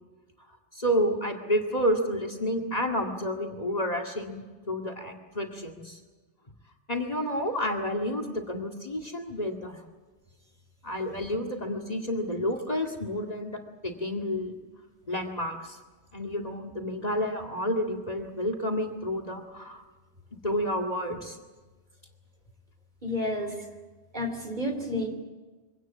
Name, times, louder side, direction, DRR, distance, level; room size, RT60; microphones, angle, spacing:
voice 1, 0.7-6.0 6.9-9.8 10.8-14.6 15.1-15.8 16.1-19.8 20.4-21.4, equal, 35° left, 5 dB, 2.2 m, -30 dB
voice 2, 23.0-23.5 24.1-25.1, left 1 dB, 40° right, 5 dB, 3.3 m, -30 dB
24.0 x 17.5 x 8.3 m, 1.3 s
omnidirectional pair, 1.1 m